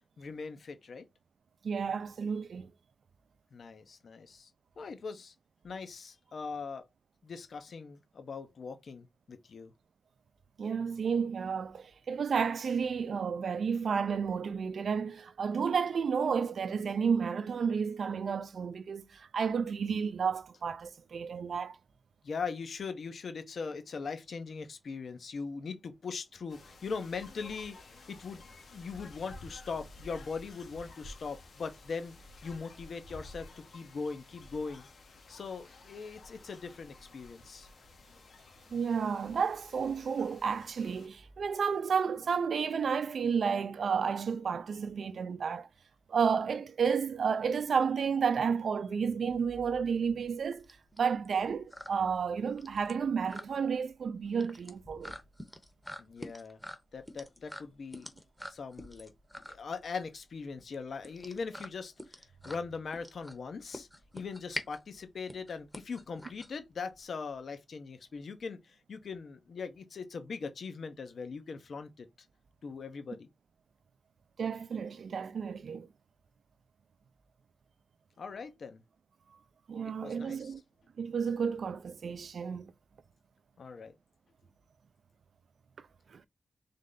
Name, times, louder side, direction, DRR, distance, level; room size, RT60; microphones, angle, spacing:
voice 1, 0.2-1.1 3.5-4.5 4.8-5.3 5.6-6.9 7.2-9.7 22.2-27.8 28.1-32.1 32.4-34.9 35.3-37.7 56.0-56.6 56.9-58.1 58.5-59.1 59.5-63.9 64.1-72.1 72.6-73.3 78.2-78.8 79.8-80.5 83.6-83.9, left 5 dB, 65° left, 0.8 m, -40 dB
voice 2, 1.6-2.7 10.6-21.8 38.7-45.7 46.1-50.7 51.0-55.1 74.4-75.9 79.7-80.6 81.0-82.7 86.1-86.2, right 6 dB, 70° right, 0.5 m, -31 dB
sound 1, 26.5-41.1, left 2 dB, 85° left, 1.3 m, -53 dB
sound 2, 49.3-67.0, equal, 5° left, 0.8 m, -46 dB
3.7 x 3.2 x 3.8 m
wide cardioid pair, 135°, 0 cm